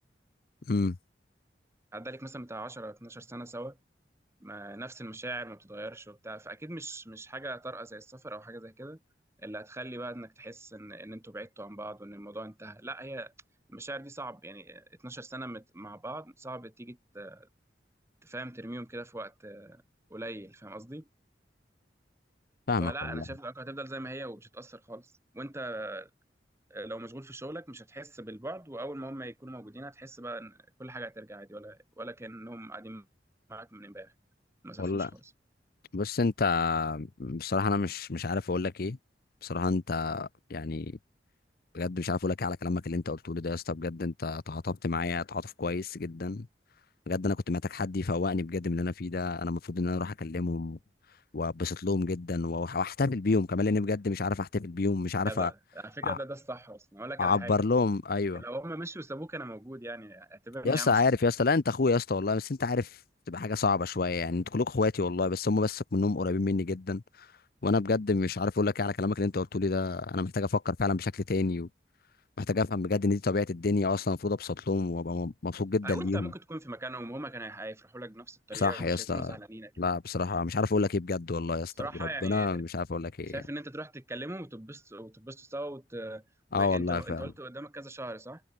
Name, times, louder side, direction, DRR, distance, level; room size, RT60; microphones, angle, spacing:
voice 1, 1.9-3.8 4.4-9.0 9.4-13.3 13.7-17.5 18.2-19.8 20.1-21.1 22.8-26.1 26.7-33.1 33.5-34.1 34.6-35.3 55.2-57.7 58.3-61.0 75.8-79.8 81.8-82.6 83.2-86.2 86.5-88.4, right 1 dB, 15° right, 1.4 m, -41 dB
voice 2, 22.7-23.2 34.8-35.1 35.9-39.0 39.4-40.9 41.7-46.5 47.1-50.8 51.3-55.5 56.0-56.2 57.2-58.4 60.6-62.9 63.3-67.0 67.6-71.7 72.4-76.3 78.5-79.4 79.8-81.7 82.0-83.4 86.5-87.2, left 3 dB, 55° left, 0.7 m, -29 dB
head